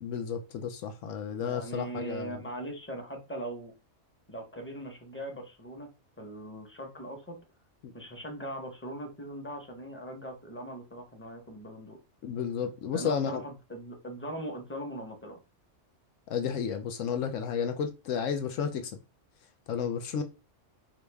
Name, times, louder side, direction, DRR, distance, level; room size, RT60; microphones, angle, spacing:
voice 1, 0.0-2.4 7.8-7.9 12.2-13.4 16.3-18.9 19.7-20.2, left 7 dB, 80° left, 1.0 m, -32 dB
voice 2, 1.4-3.7 4.3-5.9 6.2-7.4 7.9-12.0 12.9-15.4, right 1 dB, 10° left, 0.9 m, -40 dB
4.8 x 2.5 x 3.4 m
omnidirectional pair, 1.3 m